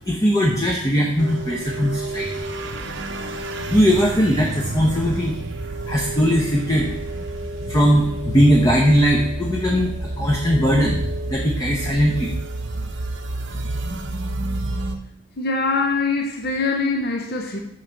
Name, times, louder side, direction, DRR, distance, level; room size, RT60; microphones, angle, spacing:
voice 1, 0.1-2.4 3.7-5.3 5.9-6.9 7.7-12.3, equal, 15° left, 0.7 m, -19 dB
sound 1, 1.2-15.0, right 2 dB, 55° right, 0.7 m, -29 dB
voice 2, 15.4-17.6, left 3 dB, 45° left, 0.7 m, -23 dB
6.5 x 4.5 x 6.5 m
head